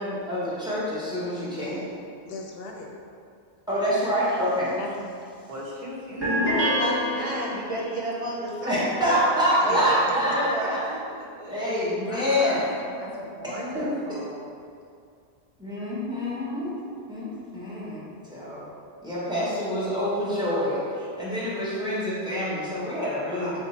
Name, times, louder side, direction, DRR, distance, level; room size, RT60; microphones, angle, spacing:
voice 1, 0.0-1.9 3.7-4.7 8.7-10.8 11.5-12.6 13.7-13.8 15.6-16.7 17.1-18.7 19.0-23.6, equal, 5° right, -9 dB, 1.0 m, -26 dB
voice 2, 2.3-2.9 4.8-5.2 9.7-9.9 10.3-10.4 12.1-12.6 12.9-13.3, left 3 dB, 65° left, 0 dB, 0.8 m, -39 dB
voice 3, 5.5-9.2 9.6-11.9 12.8-12.9, right 1 dB, 45° right, -4 dB, 0.5 m, -32 dB
sound 1, 6.2-8.0, equal, 25° right, 1.3 m, -26 dB
voice 4, 13.0-14.4 23.4-23.6, right 1 dB, 65° right, -3 dB, 0.9 m, -38 dB
3.9 x 2.6 x 4.1 m, 2.3 s
omnidirectional pair, 1.1 m